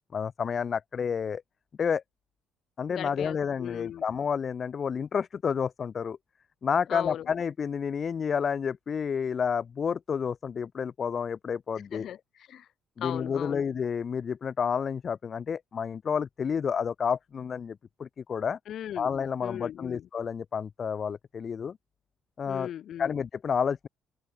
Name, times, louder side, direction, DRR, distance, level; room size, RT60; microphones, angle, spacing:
voice 1, 0.1-1.4 1.8-2.0 2.8-6.2 6.6-12.1 13.0-18.6 19.0-21.8 22.4-22.7 23.0-23.9, left 6 dB, 40° left, 0.6 m, -30 dB
voice 2, 2.9-4.0 6.9-7.3 11.9-12.7 13.0-13.6 18.7-19.1 19.4-20.1 22.5-23.2, left 10 dB, 60° left, 1.0 m, -38 dB
open air
cardioid pair, 95°, 0 cm